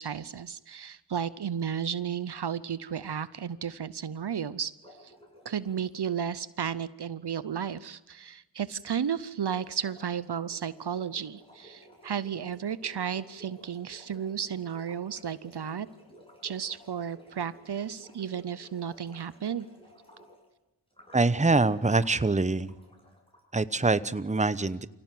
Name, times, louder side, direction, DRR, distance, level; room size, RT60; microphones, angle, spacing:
voice 1, 0.0-4.7 5.4-15.9 16.4-19.7, right 8 dB, 65° right, 17 dB, 0.7 m, -33 dB
sound 1, 4.8-6.0 9.3-20.4 20.9-23.4, equal, 15° left, 7.5 m, -55 dB
voice 2, 21.1-22.7 23.5-24.9, right 3 dB, 15° right, 15 dB, 0.8 m, -24 dB
25.5 x 17.0 x 7.7 m, 0.97 s
cardioid pair, 40°, 43 cm